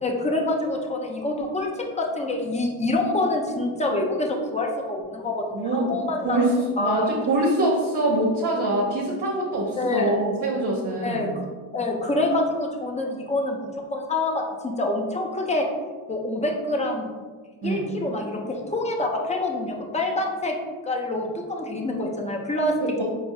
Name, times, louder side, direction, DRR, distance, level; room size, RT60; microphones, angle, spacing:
voice 1, 0.0-6.5 6.8-7.1 9.7-10.2 11.0-11.5 11.7-15.7 16.1-17.1 17.6-20.6 20.9-22.8, left 2 dB, 15° left, 0 dB, 0.6 m, -26 dB
voice 2, 5.5-6.0 6.2-6.5 6.8-11.4 17.6-17.9 22.8-23.0, right 1 dB, 55° right, -3 dB, 0.8 m, -24 dB
4.5 x 2.0 x 2.6 m, 1.5 s
supercardioid pair, 50°, 48 cm